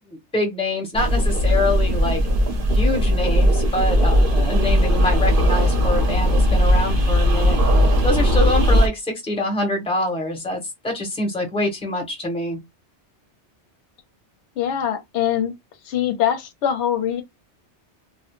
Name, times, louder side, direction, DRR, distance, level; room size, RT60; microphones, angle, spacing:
voice 1, 0.1-2.2 2.7-7.6 8.0-12.6, left 2 dB, 5° left, 0.7 m, -25 dB
sound 1, 0.9-8.9, equal, 55° right, 0.9 m, -18 dB
voice 2, 14.6-15.5 15.8-17.2, left 10 dB, 75° left, 0.9 m, -23 dB
2.3 x 2.0 x 2.9 m
omnidirectional pair, 1.2 m